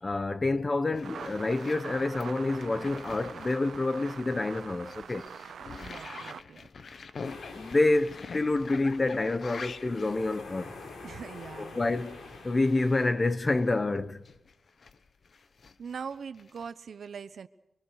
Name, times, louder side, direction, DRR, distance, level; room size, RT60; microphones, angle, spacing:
voice 1, 0.0-5.3 7.5-10.7 11.6-14.2, left 2 dB, 25° left, 0.9 m, -28 dB
sound 1, 0.9-13.8 14.2-16.7, left 4 dB, 45° left, 1.1 m, -46 dB
sound 2, 1.0-6.4, right 7 dB, 90° right, 0.8 m, -44 dB
voice 2, 5.8-6.7 11.0-11.8 15.8-17.5, right 6 dB, 60° right, 1.0 m, -41 dB
sound 3, 7.2-13.1, left 3 dB, 75° left, 4.6 m, -47 dB
25.0 x 24.0 x 6.6 m
wide cardioid pair, 160°, 0 cm